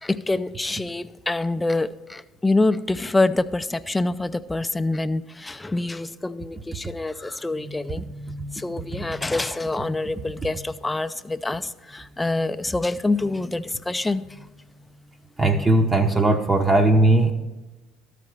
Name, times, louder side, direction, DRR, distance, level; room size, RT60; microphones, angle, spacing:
voice 1, 0.0-8.0 8.5-14.2, left 2 dB, 15° left, 11 dB, 0.4 m, -26 dB
voice 2, 8.0-8.5 15.4-17.3, right 2 dB, 25° right, 3 dB, 0.7 m, -19 dB
13.5 x 5.0 x 5.7 m, 1.1 s
figure-of-eight pair, 60°, 0 cm